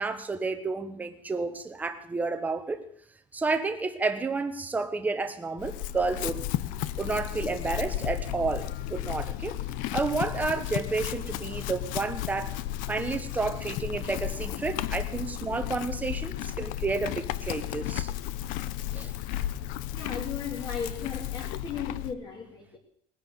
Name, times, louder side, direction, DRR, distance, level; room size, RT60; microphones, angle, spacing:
voice 1, 0.0-2.8 3.3-6.5 7.0-9.6 9.9-12.6 12.9-18.1 18.9-19.4, right 3 dB, 10° right, 8 dB, 1.2 m, -31 dB
Chewing mastication / Livestock farm animals working animals, 5.6-22.1, left 13 dB, 80° left, 0.8 m, -34 dB
voice 2, 19.9-22.8, left 6 dB, 30° left, -3 dB, 2.9 m, -36 dB
19.5 x 9.9 x 6.9 m, 0.63 s
cardioid pair, 175°, 14 cm